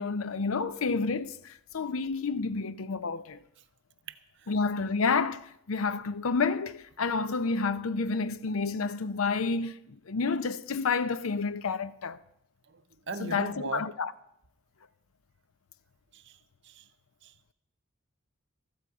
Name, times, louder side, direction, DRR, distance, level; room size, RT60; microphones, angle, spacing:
voice 1, 0.0-3.4 4.5-12.2 13.2-14.1, left 4 dB, 80° left, 0.6 m, -30 dB
voice 2, 13.1-13.8 16.1-16.4 16.6-16.8 17.2-17.5, right 4 dB, 55° right, 0.7 m, -38 dB
14.5 x 13.5 x 4.8 m
head